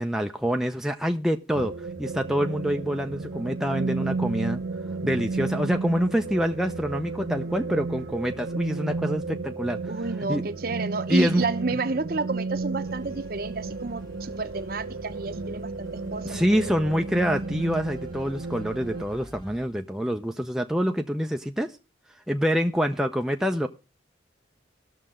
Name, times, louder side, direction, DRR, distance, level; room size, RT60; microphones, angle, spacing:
voice 1, 0.0-1.7 2.0-4.6 5.0-9.8 10.3-10.4 11.1-11.4 16.2-21.7 22.3-23.7, equal, 5° right, 0.5 m, -26 dB
sound 1, 1.5-19.0, right 3 dB, 85° right, 0.9 m, -33 dB
voice 2, 9.9-16.8, right 3 dB, 50° right, 0.8 m, -31 dB
sound 2, 12.8-19.7, equal, 20° left, 1.4 m, -47 dB
18.5 x 6.6 x 3.7 m
head